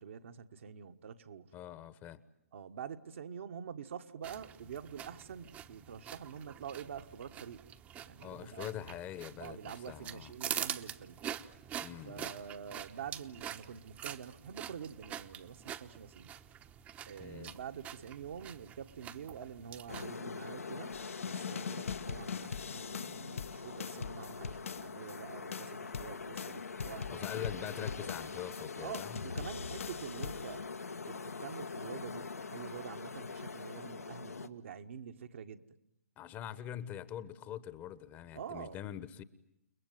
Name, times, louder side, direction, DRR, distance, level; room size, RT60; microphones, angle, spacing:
voice 1, 0.0-1.5 2.5-7.7 8.0-8.9 9.4-11.2 12.0-16.3 17.0-20.9 21.2-27.3 28.8-35.6 38.3-38.8, right 7 dB, 55° right, 6 dB, 1.6 m, -46 dB
voice 2, 1.5-2.2 8.2-10.3 11.8-12.3 17.2-17.6 27.1-29.2 36.2-39.2, left 11 dB, 20° left, 16 dB, 1.2 m, -44 dB
sound 1, 4.2-20.1, right 9 dB, 20° right, 1.0 m, -45 dB
sound 2, 19.9-34.5, left 4 dB, 80° left, 1.5 m, -43 dB
sound 3, 20.9-25.2 25.5-28.6 28.9-30.6, left 6 dB, 65° left, 1.1 m, -42 dB
30.0 x 21.5 x 9.3 m, 0.82 s
figure-of-eight pair, 130°, 8 cm